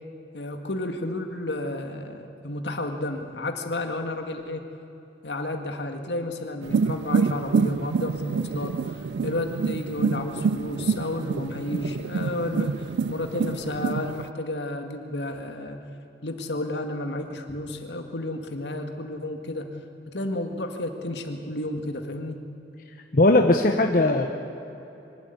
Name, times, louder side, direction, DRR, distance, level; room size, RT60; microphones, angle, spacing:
voice 1, 0.3-4.6 5.2-8.7 9.2-12.8 13.1-15.8 16.2-19.7 20.1-22.4, left 2 dB, 80° left, 5 dB, 2.0 m, -31 dB
sound 1, 6.6-14.3, right 5 dB, 75° right, 0.4 m, -27 dB
voice 2, 23.1-24.3, left 2 dB, 55° left, 4 dB, 1.1 m, -19 dB
24.0 x 12.5 x 9.7 m, 3.0 s
head